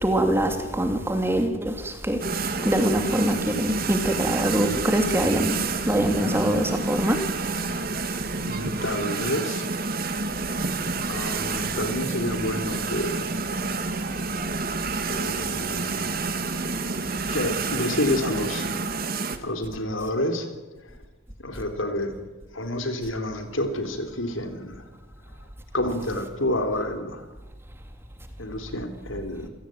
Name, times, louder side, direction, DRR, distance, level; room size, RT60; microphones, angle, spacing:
voice 1, 0.0-2.2 2.6-5.6 5.9-7.2, right 1 dB, 10° right, 5 dB, 2.8 m, -23 dB
sound 1, 2.2-19.4, right 4 dB, 45° right, 2.1 m, -29 dB
voice 2, 8.4-9.7 11.1-13.3 15.1-16.2 16.5-16.8 17.3-18.7 19.0-20.5 20.8-21.0 21.4-22.2 22.5-24.8 25.7-27.3 28.4-29.5, left 1 dB, 70° left, 6 dB, 3.9 m, -29 dB
28.5 x 17.0 x 9.3 m, 1.1 s
head